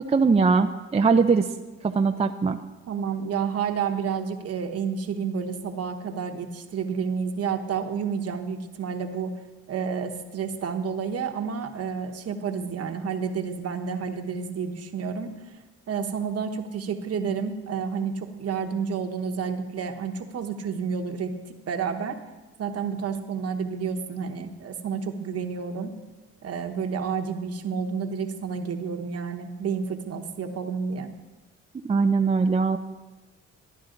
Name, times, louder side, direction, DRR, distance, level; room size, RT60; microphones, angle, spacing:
voice 1, 0.1-1.5 1.8-2.6 31.9-32.8, right 4 dB, 20° right, 6 dB, 0.4 m, -21 dB
voice 2, 2.9-9.3 9.7-15.3 15.9-21.3 21.7-22.2 22.6-25.9 26.4-31.1, right 6 dB, 55° right, 6 dB, 1.1 m, -30 dB
11.5 x 11.0 x 3.8 m, 1.2 s
cardioid pair, 90°, 30 cm